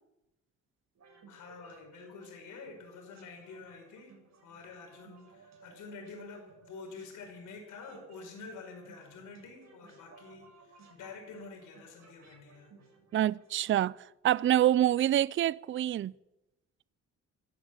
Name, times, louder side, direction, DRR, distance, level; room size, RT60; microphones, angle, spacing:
sound 1, 0.9-13.7, right 4 dB, 65° right, 6.8 m, -59 dB
voice 1, 1.3-12.7, left 4 dB, 80° left, 5.5 m, -48 dB
voice 2, 13.1-13.9 14.2-16.1, right 12 dB, 40° right, 0.4 m, -26 dB
14.5 x 12.0 x 8.2 m
cardioid pair, 90°, 30 cm